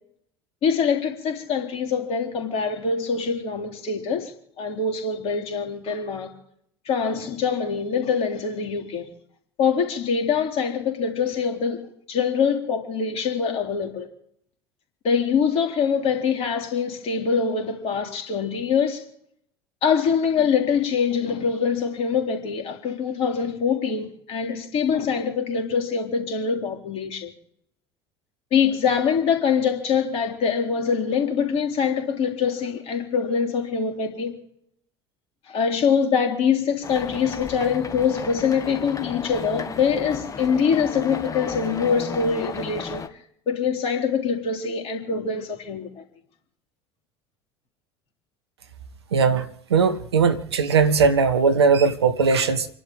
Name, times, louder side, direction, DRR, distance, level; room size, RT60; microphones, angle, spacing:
voice 1, 0.6-6.3 6.9-9.1 9.6-14.1 15.0-19.0 19.8-27.3 28.5-34.4 35.5-43.2 43.5-46.0, left 6 dB, 50° left, 3.8 m, -24 dB
sound 1, 36.8-43.1, left 5 dB, 25° left, 1.7 m, -34 dB
voice 2, 49.1-52.7, right 5 dB, 80° right, 1.3 m, -19 dB
29.5 x 11.5 x 3.6 m
figure-of-eight pair, 70°, 13 cm